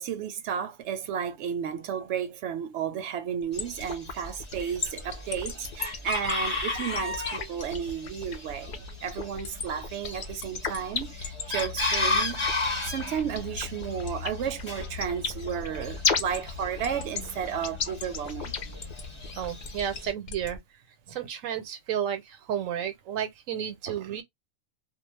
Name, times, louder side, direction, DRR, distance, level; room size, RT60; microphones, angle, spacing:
voice 1, 0.0-18.5 23.9-24.2, right 8 dB, 70° right, 0.8 m, -33 dB
Chicken rooster, 3.5-20.1, left 3 dB, 25° left, 1.0 m, -35 dB
sound 1, 3.6-20.6, left 5 dB, 55° left, 0.5 m, -33 dB
voice 2, 19.4-20.6 21.1-24.2, right 9 dB, 85° right, 1.0 m, -32 dB
2.3 x 2.0 x 3.0 m
omnidirectional pair, 1.4 m